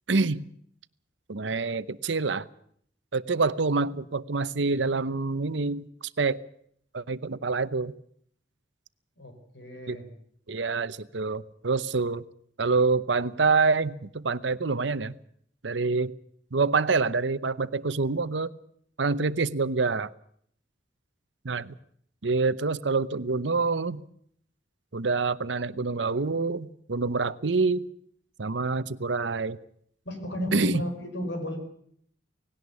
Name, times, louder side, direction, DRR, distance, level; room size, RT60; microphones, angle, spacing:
voice 1, 0.1-0.4 1.3-2.5 3.1-5.9 6.2-6.4 6.9-7.9 9.9-10.0 10.5-12.2 12.6-15.1 15.6-16.1 16.5-18.5 19.0-20.1 21.4-21.7 22.2-24.0 24.9-27.8 28.4-29.6 30.5-30.8, right 4 dB, 80° right, 15 dB, 0.8 m, -26 dB
voice 2, 9.2-10.1 30.1-31.6, equal, 80° left, 6 dB, 5.2 m, -33 dB
18.5 x 17.5 x 8.3 m, 0.66 s
head